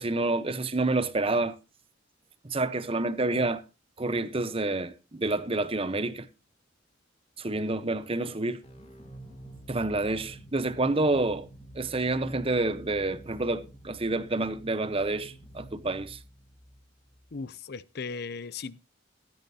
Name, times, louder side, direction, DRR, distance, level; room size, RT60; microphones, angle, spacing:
voice 1, 0.0-1.6 2.4-3.6 4.0-6.3 7.4-8.6 9.7-11.5 11.7-16.2, right 2 dB, 30° right, 1.0 m, -28 dB
sound 1, 8.6-17.3, right 1 dB, 30° left, 2.9 m, -48 dB
voice 2, 17.3-18.8, left 4 dB, 55° left, 0.6 m, -37 dB
16.0 x 13.0 x 2.8 m
head